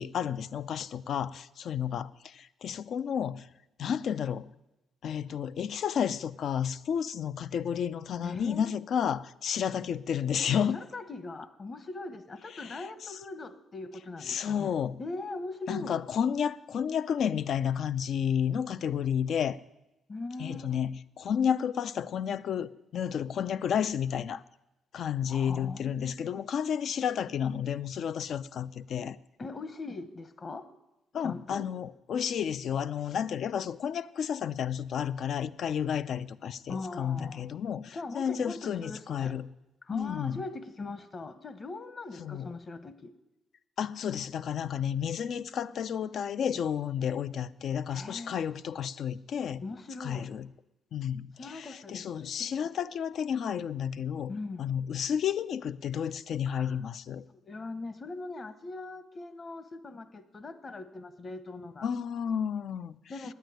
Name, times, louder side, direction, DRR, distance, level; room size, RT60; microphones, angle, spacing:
voice 1, 0.0-3.5 3.8-4.5 5.0-10.8 12.6-13.2 14.2-15.0 15.7-19.6 20.4-24.4 24.9-29.2 31.1-39.5 39.9-40.4 42.2-42.5 43.8-49.6 50.0-50.5 50.9-54.3 54.6-57.2 61.8-63.0, left 8 dB, 65° left, 15 dB, 0.5 m, -31 dB
voice 2, 8.2-8.7 10.6-16.0 20.1-20.8 25.3-26.4 29.4-30.7 31.2-31.7 36.7-37.4 37.9-39.4 39.8-43.1 47.9-48.3 49.6-50.3 51.4-52.7 54.3-54.7 56.5-56.8 57.3-61.9 63.1-63.3, left 3 dB, 35° left, 12 dB, 1.0 m, -41 dB
9.3 x 9.1 x 9.2 m, 0.95 s
cardioid pair, 90°, 0 cm